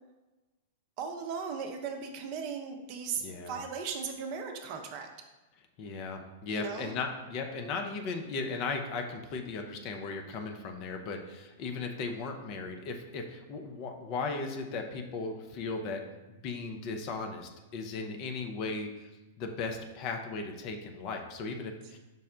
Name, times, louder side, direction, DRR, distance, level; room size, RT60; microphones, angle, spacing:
voice 1, 1.0-5.1 6.5-6.9, right 6 dB, 45° right, 4 dB, 0.5 m, -37 dB
voice 2, 3.2-3.6 5.8-16.0 16.3-19.1 19.4-22.0, left 4 dB, 40° left, 4 dB, 0.5 m, -37 dB
5.3 x 2.1 x 3.6 m, 1.1 s
figure-of-eight pair, 100°, 0 cm